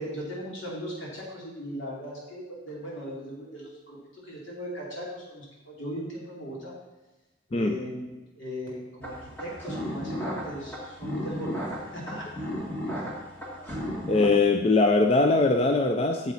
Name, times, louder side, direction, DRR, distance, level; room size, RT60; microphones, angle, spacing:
voice 1, 0.0-6.7 7.5-8.1 8.4-12.4, equal, 80° left, -4 dB, 2.7 m, -38 dB
sound 1, 9.0-14.3, equal, 10° left, 1.6 m, -34 dB
voice 2, 14.1-16.3, left 3 dB, 30° left, 4 dB, 0.4 m, -21 dB
8.4 x 7.1 x 4.1 m, 1.1 s
head